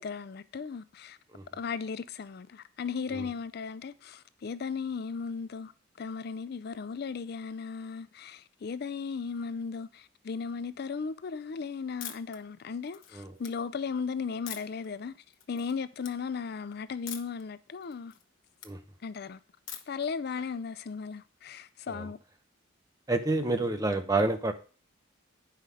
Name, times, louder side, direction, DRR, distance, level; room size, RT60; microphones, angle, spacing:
voice 1, 0.0-1.2 1.5-5.7 6.0-15.1 15.5-18.1 19.0-19.4 19.9-22.2, left 5 dB, 50° left, 0.4 m, -36 dB
sound 1, 12.0-12.4 12.8-13.5 14.5-14.9 15.3-15.7 16.0-16.1 17.1-17.4 17.8-18.7 19.7-20.1, left 10 dB, 75° left, 1.1 m, -42 dB
voice 2, 23.1-24.5, right 2 dB, 20° right, 0.8 m, -28 dB
9.7 x 5.8 x 4.9 m
head